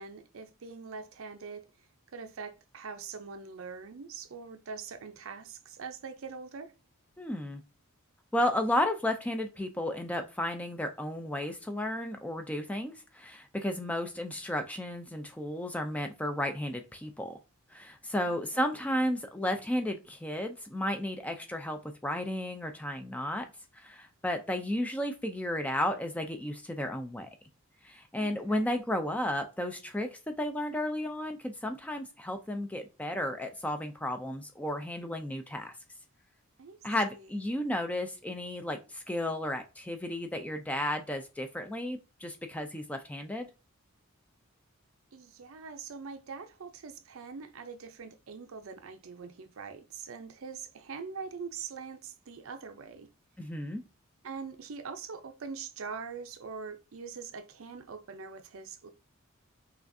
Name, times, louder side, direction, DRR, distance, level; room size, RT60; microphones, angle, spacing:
voice 1, 0.0-1.7 2.1-6.7 18.2-18.8 28.2-28.9 36.6-36.8 37.1-37.6 45.1-53.1 54.2-58.9, right 5 dB, 65° right, 0.5 m, -43 dB
voice 2, 7.2-7.6 8.3-17.4 17.7-23.4 23.7-27.3 27.8-30.1 30.4-35.7 36.8-43.5 53.4-53.8, left 1 dB, 5° left, 0.3 m, -33 dB
5.7 x 2.4 x 2.6 m
head